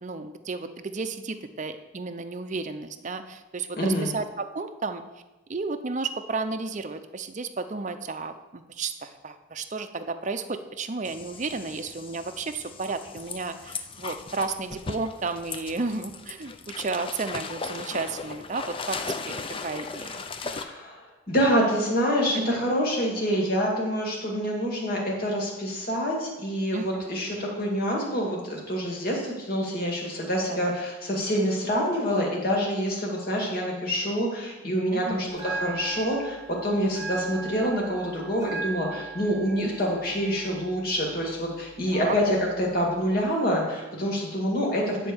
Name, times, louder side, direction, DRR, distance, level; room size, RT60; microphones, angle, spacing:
voice 1, 0.0-5.0 5.5-20.5 22.3-22.6 26.7-27.2 30.5-30.7 34.9-35.3 41.9-42.1, right 3 dB, 35° right, 8 dB, 0.5 m, -33 dB
voice 2, 3.7-4.1 20.4-45.1, equal, 45° left, -2 dB, 2.2 m, -26 dB
sound 1, 11.0-20.6, left 4 dB, 25° left, 0.4 m, -37 dB
Bell, 35.3-43.3, right 4 dB, 15° right, 1.6 m, -40 dB
9.7 x 4.5 x 7.0 m, 1.1 s
head